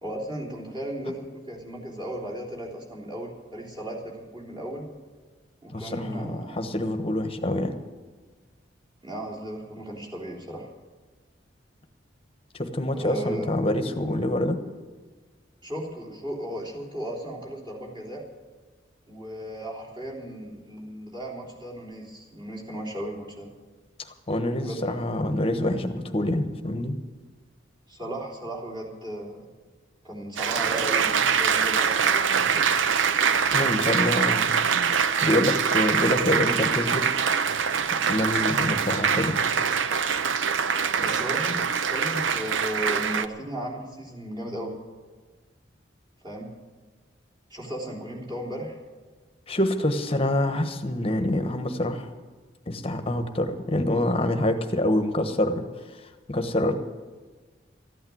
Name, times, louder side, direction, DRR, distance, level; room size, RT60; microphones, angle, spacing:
voice 1, 0.0-4.9 5.6-6.6 9.0-10.7 12.9-13.5 15.6-18.2 19.1-23.5 24.6-24.9 27.9-29.4 30.0-32.9 41.0-44.7 46.2-46.5 47.5-48.8, right 1 dB, 25° right, -4 dB, 3.4 m, -35 dB
voice 2, 5.7-7.7 12.5-14.6 24.3-27.0 33.5-34.5 35.2-37.0 37.9-39.4 49.5-52.1 52.7-55.6 56.3-56.8, left 1 dB, 30° left, 7 dB, 1.2 m, -26 dB
Applause, 30.4-43.3, right 6 dB, 80° right, 0.6 m, -24 dB
14.5 x 8.9 x 9.4 m, 1.4 s
head